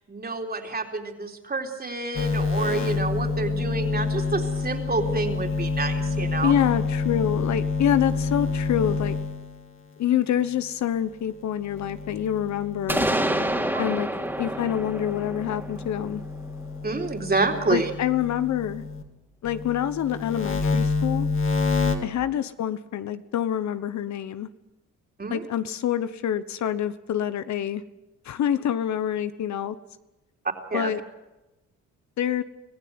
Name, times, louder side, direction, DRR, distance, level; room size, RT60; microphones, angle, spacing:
voice 1, 0.0-6.5 13.7-13.9 16.8-17.9 25.2-25.4 30.7-30.9, right 3 dB, 30° right, 3 dB, 3.8 m, -28 dB
sound 1, 2.1-9.6 11.6-13.8 14.2-19.0 19.4-21.9, left 4 dB, 45° left, 3.5 m, -28 dB
voice 2, 6.4-9.2 10.0-13.1 13.8-14.1 14.4-16.2 17.7-18.8 19.4-21.3 22.0-24.5 25.3-27.8 28.2-29.8 30.7-31.0 32.2-32.4, left 10 dB, 65° left, 13 dB, 1.1 m, -26 dB
sound 2, 12.9-16.7, right 1 dB, 5° right, 3.0 m, -28 dB
25.5 x 16.0 x 9.6 m, 1.0 s
cardioid pair, 90°, 30 cm